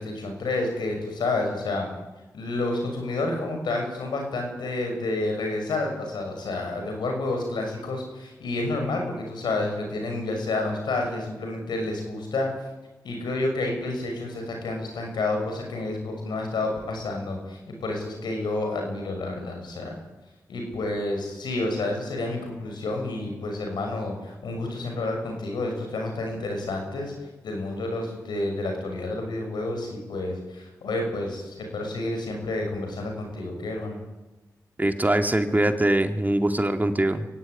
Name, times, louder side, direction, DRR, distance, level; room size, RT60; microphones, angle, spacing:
voice 1, 0.0-1.9 2.3-12.5 13.0-20.0 20.5-27.1 27.4-34.0, left 2 dB, 85° left, 3 dB, 6.3 m, -29 dB
voice 2, 34.8-37.3, right 1 dB, 25° right, 6 dB, 2.6 m, -22 dB
23.5 x 16.0 x 9.9 m, 1.1 s
cardioid pair, 40°, 7 cm